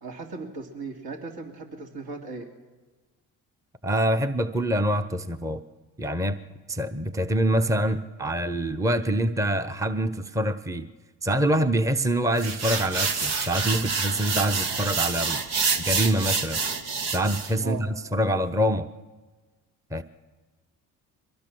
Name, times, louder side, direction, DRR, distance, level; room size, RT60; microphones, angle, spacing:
voice 1, 0.0-2.5 17.6-17.9, right 4 dB, 55° right, 3 dB, 3.0 m, -37 dB
voice 2, 3.8-5.6 6.0-6.4 6.7-10.9 11.2-15.4 15.8-16.6 17.1-18.9 19.9-20.0, right 1 dB, 5° right, 9 dB, 1.0 m, -25 dB
sound 1, 12.4-17.5, right 5 dB, 70° right, 1.8 m, -27 dB
23.5 x 18.5 x 6.3 m, 1.3 s
hypercardioid pair, 55°, 44 cm